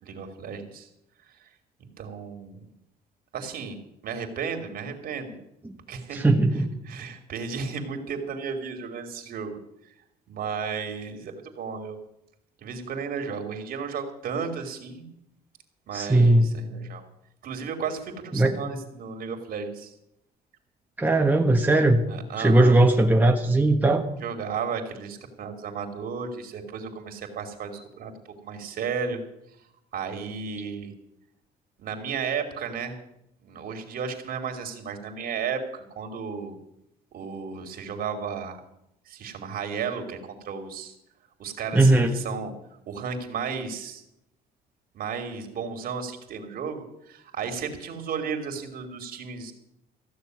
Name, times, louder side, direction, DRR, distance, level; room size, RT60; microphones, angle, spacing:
voice 1, 0.0-0.9 1.4-1.5 2.0-2.7 3.3-3.8 4.0-5.4 5.9-6.2 6.5-9.6 10.3-12.0 12.6-15.1 15.9-17.0 17.4-19.9 22.1-22.7 24.2-29.2 29.9-30.9 31.8-33.0 33.4-36.6 37.1-38.6 39.1-40.9 41.4-42.5 42.9-44.0 44.9-49.5, right 6 dB, 60° right, 4 dB, 2.9 m, -34 dB
voice 2, 6.1-6.7 15.9-16.5 18.3-18.6 21.0-22.0 22.4-24.0 41.7-42.1, right 2 dB, 10° right, 1 dB, 1.4 m, -19 dB
15.5 x 6.9 x 9.6 m, 0.80 s
cardioid pair, 110°, 17 cm